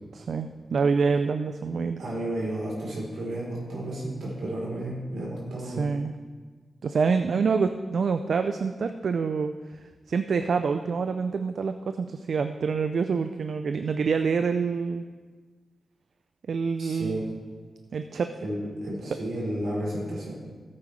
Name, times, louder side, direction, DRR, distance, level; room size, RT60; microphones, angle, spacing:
voice 1, 0.2-2.0 5.6-6.1 6.8-9.5 10.1-15.1 16.5-17.2 17.9-18.3, right 5 dB, 70° right, 8 dB, 0.4 m, -26 dB
voice 2, 2.0-5.9 16.8-17.3 18.4-20.3, right 1 dB, 90° right, -4 dB, 3.6 m, -32 dB
14.0 x 8.5 x 3.3 m, 1.4 s
cardioid pair, 55°, 0 cm